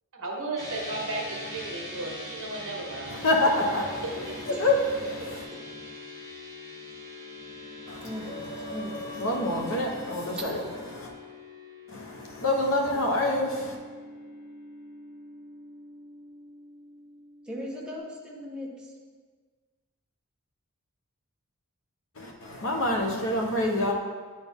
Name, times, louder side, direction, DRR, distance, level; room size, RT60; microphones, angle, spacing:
voice 1, 0.1-3.2 3.8-3.9, right 2 dB, 60° right, -1 dB, 1.3 m, -34 dB
sound 1, 0.6-18.0, left 1 dB, 15° left, 1.1 m, -43 dB
voice 2, 3.1-4.8 5.1-5.4 7.9-10.6 10.9-11.1 11.9-13.8 22.1-23.9, left 2 dB, 65° left, 1 dB, 1.0 m, -27 dB
voice 3, 5.2-5.6 8.0-9.8 10.3-10.4 17.4-18.9, equal, 5° right, -4 dB, 1.1 m, -39 dB
9.5 x 4.3 x 3.5 m, 1.5 s
head